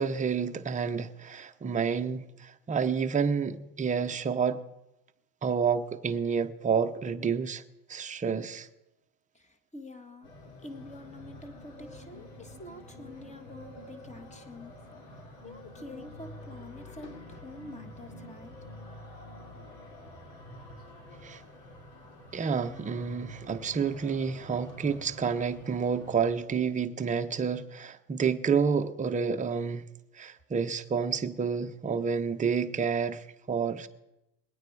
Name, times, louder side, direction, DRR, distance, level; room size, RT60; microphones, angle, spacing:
voice 1, 0.0-4.6 5.4-7.6 7.9-8.7 21.2-21.4 22.3-29.8 30.1-33.9, right 6 dB, 15° right, 0.7 m, -29 dB
voice 2, 9.3-10.3 10.6-14.7 15.4-18.5, left 2 dB, 15° left, 1.5 m, -47 dB
sound 1, 10.2-26.4, left 1 dB, 90° left, 3.6 m, -48 dB
21.0 x 9.1 x 4.7 m
supercardioid pair, 115°, 47 cm